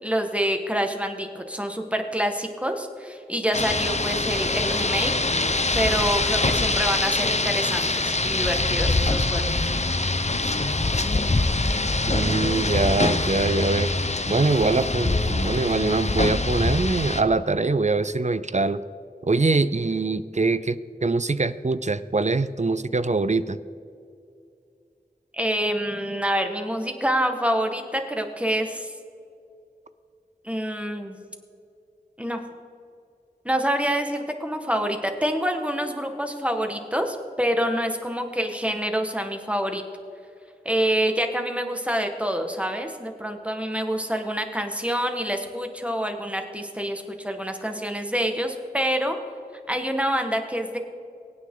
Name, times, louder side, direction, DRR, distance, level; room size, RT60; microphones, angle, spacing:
voice 1, 0.0-5.1 5.7-9.7 25.3-28.9 30.4-31.2 32.2-32.4 33.4-39.8 40.6-49.2 49.7-50.8, equal, 10° right, 4 dB, 1.7 m, -26 dB
Rain, 3.5-17.2, left 2 dB, 45° left, 0.8 m, -24 dB
voice 2, 12.1-13.9 14.3-18.8 19.2-23.6, right 3 dB, 45° right, 14 dB, 0.5 m, -23 dB
23.5 x 9.3 x 3.9 m, 2.6 s
wide cardioid pair, 40°, 16 cm